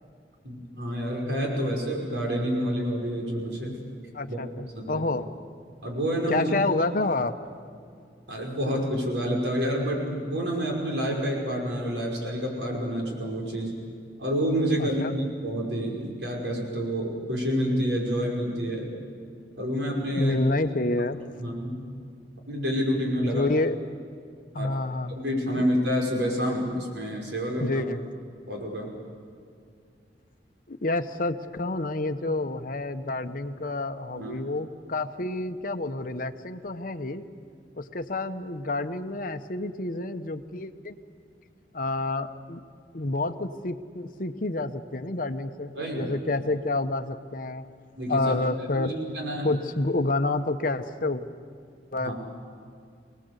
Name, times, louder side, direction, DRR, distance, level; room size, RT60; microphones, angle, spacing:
voice 1, 0.4-3.7 4.3-4.4 4.7-5.1 5.8-6.5 8.3-13.7 14.2-18.9 19.6-20.4 21.4-21.9 22.5-23.5 24.5-24.7 25.2-27.8 28.5-28.9 34.2-34.4 45.8-46.2 48.0-48.4 48.7-49.5 52.0-52.1, equal, 90° right, -1 dB, 5.6 m, -28 dB
voice 2, 4.1-5.3 6.3-7.3 14.8-15.1 20.2-21.2 23.2-23.8 24.5-25.1 27.6-28.0 30.7-37.2 37.8-40.9 41.7-42.6 42.9-47.6 48.1-48.9 49.4-51.2 51.9-52.1, left 2 dB, 50° left, 8 dB, 1.0 m, -28 dB
26.0 x 19.0 x 8.1 m, 2.4 s
head